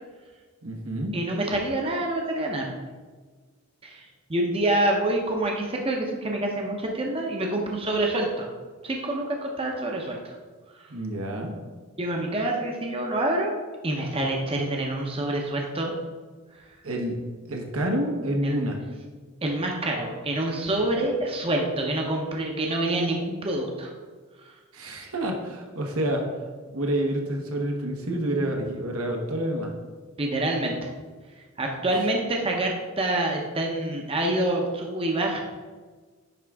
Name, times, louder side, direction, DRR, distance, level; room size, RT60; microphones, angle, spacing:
voice 1, 0.6-1.1 10.9-11.5 16.8-17.1 17.5-18.8 24.7-26.2 26.7-29.7 31.9-32.1, right 1 dB, 85° right, 2 dB, 1.1 m, -28 dB
voice 2, 1.1-2.7 3.8-4.0 4.3-8.5 8.8-10.3 10.8-10.9 12.0-13.5 13.8-15.9 18.4-18.6 19.4-23.9 30.2-30.9 31.6-35.4, right 1 dB, 25° right, 0 dB, 0.7 m, -27 dB
10.0 x 3.6 x 3.5 m, 1.4 s
head